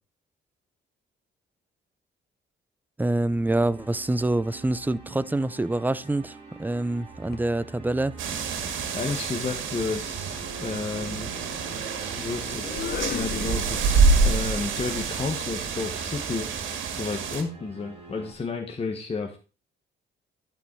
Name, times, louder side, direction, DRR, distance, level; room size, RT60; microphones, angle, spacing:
voice 1, 3.0-8.1, right 2 dB, 10° right, 0.5 m, -26 dB
sound 1, 3.2-18.3, right 4 dB, 30° right, 4.8 m, -46 dB
sound 2, 7.1-7.5 8.9-14.2, left 9 dB, 55° left, 0.7 m, -39 dB
sound 3, 8.2-17.4, right 4 dB, 80° right, 2.0 m, -27 dB
voice 2, 8.9-11.3 12.2-16.5 16.9-19.4, left 4 dB, 30° left, 1.5 m, -32 dB
11.5 x 5.3 x 4.6 m
cardioid pair, 90°, 20 cm